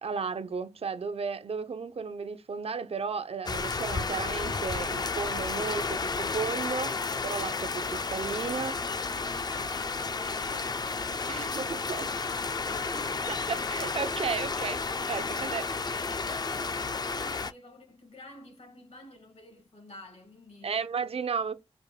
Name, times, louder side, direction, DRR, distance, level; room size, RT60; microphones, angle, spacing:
voice 1, 0.0-7.0 7.2-8.8 11.3-12.1 13.3-15.7 20.6-21.5, right 5 dB, 65° right, 0.5 m, -34 dB
sound 1, 3.5-17.5, left 4 dB, 40° left, 0.4 m, -32 dB
voice 2, 8.4-13.3 15.3-20.7, left 1 dB, 75° left, 1.6 m, -50 dB
4.9 x 2.1 x 3.2 m
wide cardioid pair, 80°, 11 cm